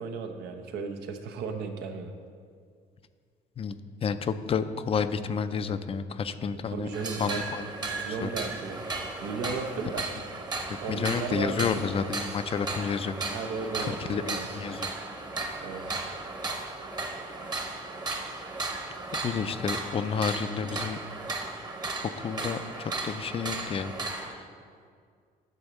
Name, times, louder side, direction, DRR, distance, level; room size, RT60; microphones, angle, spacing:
voice 1, 0.0-2.1 6.7-8.8 9.2-10.1 10.8-11.7 13.3-14.4 15.6-15.8 20.6-20.9, right 5 dB, 80° right, 6 dB, 0.8 m, -35 dB
voice 2, 3.6-6.9 7.2-7.6 8.1-8.3 10.9-13.2 13.8-14.9 19.2-21.0 22.2-24.4, left 6 dB, 35° left, 11 dB, 0.4 m, -30 dB
sound 1, 6.9-24.3, right 3 dB, 25° right, 0.9 m, -35 dB
10.5 x 4.0 x 6.3 m, 2.1 s
cardioid pair, 110°, 17 cm